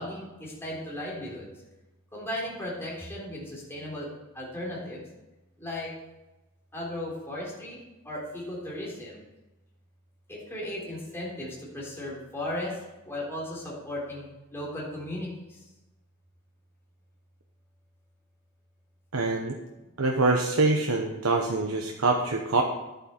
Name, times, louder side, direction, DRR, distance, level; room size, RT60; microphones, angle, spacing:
voice 1, 0.0-1.5 2.1-4.1 4.3-5.1 5.6-5.9 6.7-7.8 8.0-9.2 10.3-12.8 13.0-15.6, left 1 dB, 10° left, -5 dB, 3.7 m, -36 dB
voice 2, 19.1-19.5 20.0-22.6, right 3 dB, 90° right, 2 dB, 1.0 m, -25 dB
11.0 x 8.9 x 4.5 m, 1.0 s
head